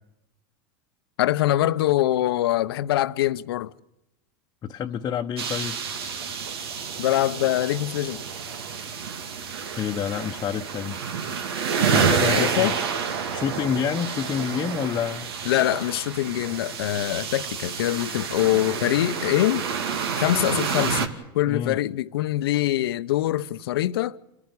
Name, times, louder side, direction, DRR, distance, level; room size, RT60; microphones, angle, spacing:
voice 1, 1.2-3.7 7.0-8.2 12.3-12.8 15.4-19.6 20.1-21.1 21.3-24.2, left 14 dB, 85° left, 0.9 m, -24 dB
voice 2, 4.6-6.1 9.8-11.0 11.9-12.7 13.3-15.3 21.5-21.8, left 8 dB, 30° left, 1.0 m, -28 dB
sound 1, 5.4-21.1, right 6 dB, 90° right, 2.5 m, -29 dB
28.0 x 14.5 x 9.8 m
supercardioid pair, 125°, 12 cm